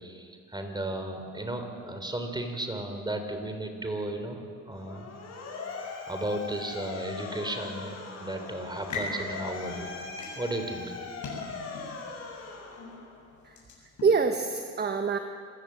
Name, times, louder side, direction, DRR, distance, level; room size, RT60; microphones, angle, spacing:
voice 1, 0.0-5.1 6.1-9.9 10.4-11.0, right 1 dB, 15° right, 6 dB, 3.7 m, -34 dB
Motor vehicle (road) / Siren, 4.7-13.3, left 4 dB, 60° left, 5.2 m, -40 dB
sound 1, 8.6-14.2, left 2 dB, 75° left, 7.3 m, -41 dB
voice 2, 13.4-15.2, right 5 dB, 35° right, 6 dB, 1.3 m, -27 dB
26.5 x 17.0 x 7.8 m, 2.2 s
cardioid pair, 90°, 30 cm